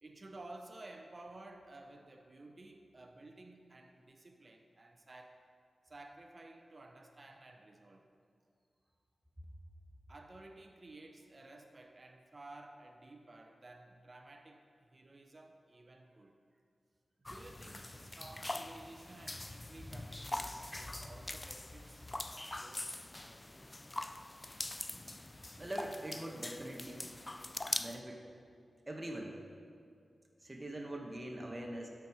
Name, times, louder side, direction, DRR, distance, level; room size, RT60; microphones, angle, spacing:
voice 1, 0.0-5.5 5.8-8.1 10.1-16.4 17.2-22.0 22.3-23.7, right 2 dB, 45° right, 5 dB, 0.9 m, -54 dB
sound 1, 17.3-28.0, left 2 dB, 25° left, 0.3 m, -43 dB
voice 2, 25.6-27.1 27.8-28.2 28.9-29.3 30.4-31.9, right 1 dB, 25° right, 0 dB, 1.1 m, -43 dB
12.5 x 4.7 x 4.8 m, 2.3 s
cardioid pair, 60°, 0 cm